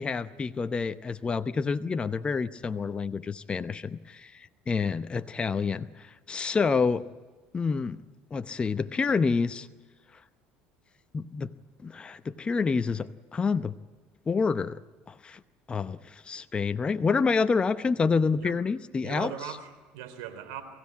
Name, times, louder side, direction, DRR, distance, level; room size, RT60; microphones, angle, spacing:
voice 1, 0.0-7.1 7.5-8.0 8.3-9.7 11.1-11.5 11.8-13.7 14.3-14.8 15.1-15.4 15.7-19.3, left 5 dB, 25° left, 11 dB, 0.8 m, -28 dB
voice 2, 19.0-20.6, right 9 dB, 80° right, 10 dB, 3.6 m, -39 dB
23.0 x 16.0 x 9.7 m, 1.3 s
supercardioid pair, 95°, 4 cm